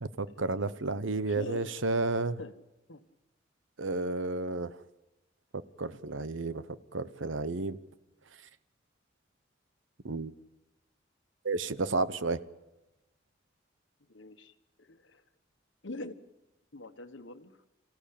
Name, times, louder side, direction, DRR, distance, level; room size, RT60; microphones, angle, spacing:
voice 1, 0.0-2.4 3.8-4.7 5.8-6.6 6.9-7.8 10.0-10.3 11.4-12.4, right 3 dB, 90° right, 14 dB, 1.0 m, -31 dB
voice 2, 1.3-1.8 2.4-2.6 2.9-3.0 14.1-14.5 14.8-15.2 15.8-16.1 16.7-17.5, left 2 dB, 80° left, 9 dB, 1.5 m, -43 dB
27.0 x 15.5 x 8.7 m, 0.99 s
head